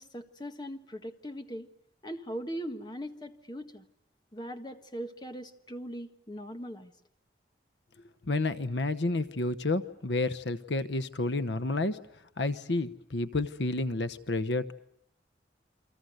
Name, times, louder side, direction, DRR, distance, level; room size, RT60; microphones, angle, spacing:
voice 1, 0.0-1.7 2.0-3.8 4.3-6.9, equal, 25° left, 7 dB, 1.6 m, -40 dB
voice 2, 8.3-12.0 12.4-14.7, left 2 dB, 80° left, 13 dB, 1.0 m, -30 dB
29.5 x 24.5 x 7.9 m, 0.72 s
head